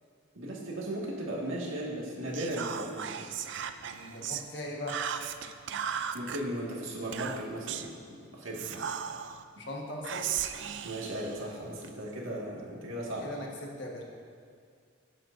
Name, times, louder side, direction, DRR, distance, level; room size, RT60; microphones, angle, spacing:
voice 1, 0.4-3.3 6.1-8.8 10.8-13.3, right 1 dB, 80° right, -3 dB, 1.8 m, -36 dB
Whispering, 2.3-4.5 4.9-6.4 7.1-7.9 8.5-9.4 10.0-11.9, right 8 dB, 60° right, 0.4 m, -36 dB
voice 2, 3.8-5.0 9.6-10.3 13.2-14.0, left 1 dB, 60° left, -1 dB, 1.4 m, -40 dB
16.0 x 7.6 x 2.6 m, 2.2 s
head